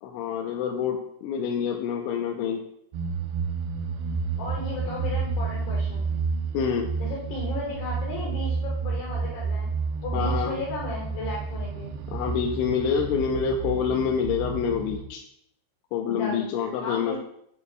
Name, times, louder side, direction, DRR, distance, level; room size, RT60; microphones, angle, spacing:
voice 1, 0.0-2.6 6.5-6.9 10.1-10.5 12.1-15.2 15.9-17.2, left 7 dB, 90° left, 1 dB, 3.2 m, -27 dB
sound 1, 2.9-15.0, right 5 dB, 75° right, 2.5 m, -30 dB
voice 2, 4.4-6.1 7.0-9.7 10.0-11.9 16.1-16.5 16.8-17.2, left 2 dB, 65° left, -4 dB, 3.1 m, -35 dB
11.0 x 8.6 x 2.3 m, 0.71 s
omnidirectional pair, 5.5 m